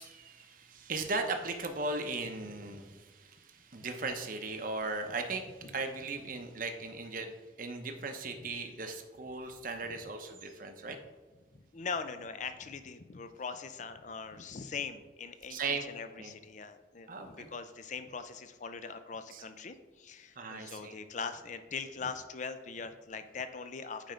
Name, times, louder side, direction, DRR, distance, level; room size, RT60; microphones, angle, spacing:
voice 1, 0.0-5.4 5.7-11.0 15.5-15.9 16.2-16.3 17.1-17.5 19.3-19.4 20.4-21.0, right 3 dB, 50° right, 5 dB, 0.8 m, -37 dB
voice 2, 11.5-24.1, left 5 dB, 45° left, 10 dB, 0.5 m, -41 dB
9.0 x 3.4 x 5.1 m, 1.3 s
head